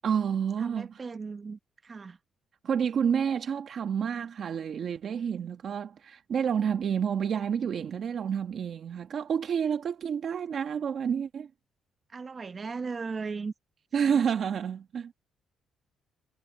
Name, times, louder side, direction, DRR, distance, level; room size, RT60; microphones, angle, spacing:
voice 1, 0.0-1.0 2.6-11.5 13.9-15.1, right 7 dB, 60° right, 1.4 m, -29 dB
voice 2, 0.6-2.2 12.1-13.5 14.1-14.2, right 4 dB, 35° right, 1.0 m, -37 dB
cardioid pair, 90°, 0 cm